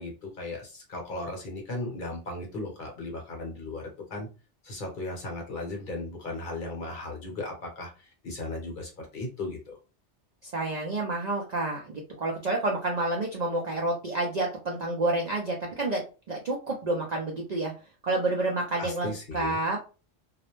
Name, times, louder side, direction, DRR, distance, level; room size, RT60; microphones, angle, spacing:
voice 1, 0.0-4.3 4.6-9.7 18.8-19.6, left 2 dB, 50° left, 1 dB, 0.9 m, -36 dB
voice 2, 10.4-16.0 16.3-17.7 18.0-19.8, right 2 dB, 55° right, -1 dB, 0.5 m, -29 dB
2.4 x 2.0 x 2.9 m, 0.33 s
omnidirectional pair, 1.2 m